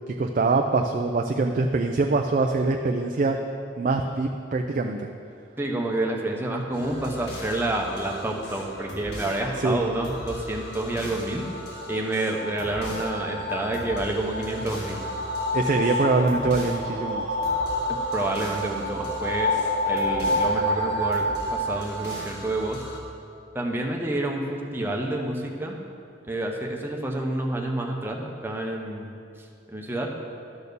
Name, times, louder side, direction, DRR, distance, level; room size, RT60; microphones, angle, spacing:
voice 1, 0.2-3.4 3.8-5.1 9.6-9.8 15.5-17.3, right 3 dB, 45° right, 3 dB, 0.4 m, -23 dB
voice 2, 5.6-11.4 11.9-15.0 18.1-19.5 19.9-21.3 21.5-22.8 23.5-25.8 26.2-29.1 29.7-30.1, right 1 dB, 10° right, 0 dB, 0.8 m, -29 dB
sound 1, 6.7-23.0, left 1 dB, 65° left, 1.7 m, -39 dB
sound 2, 11.0-22.7, left 1 dB, 85° right, 1.1 m, -29 dB
12.0 x 4.3 x 6.8 m, 2.5 s
head